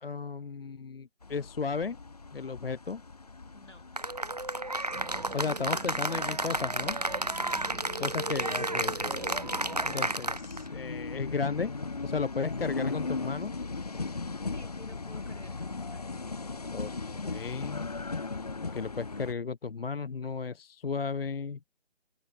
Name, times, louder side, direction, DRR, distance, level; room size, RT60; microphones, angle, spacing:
voice 1, 0.0-2.0 2.3-3.0 5.3-7.0 8.0-9.1 9.9-11.7 12.0-13.5 16.7-17.8 18.7-21.6, left 5 dB, 55° left, 0.5 m, -34 dB
sound 1, 1.2-19.3, left 3 dB, 35° left, 0.9 m, -39 dB
voice 2, 3.5-3.9 5.3-6.0 7.5-8.6 9.5-9.8 14.5-16.3, left 1 dB, 85° left, 7.2 m, -53 dB
Cheering / Applause, 4.0-10.7, right 2 dB, 35° right, 0.5 m, -32 dB
sound 2, 4.9-10.2, right 4 dB, 75° right, 1.1 m, -46 dB
open air
figure-of-eight pair, 160°, 35 cm